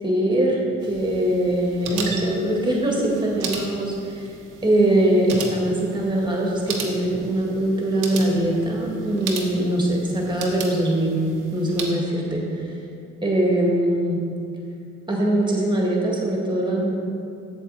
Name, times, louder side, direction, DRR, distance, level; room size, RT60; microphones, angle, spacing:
voice 1, 0.0-4.2 4.6-11.2 11.5-12.6 13.2-14.2 15.1-16.9, right 1 dB, 15° right, -2 dB, 1.9 m, -22 dB
sound 1, 0.8-11.9, right 4 dB, 85° right, 1.1 m, -36 dB
7.7 x 7.2 x 4.2 m, 2.5 s
cardioid pair, 90°, 30 cm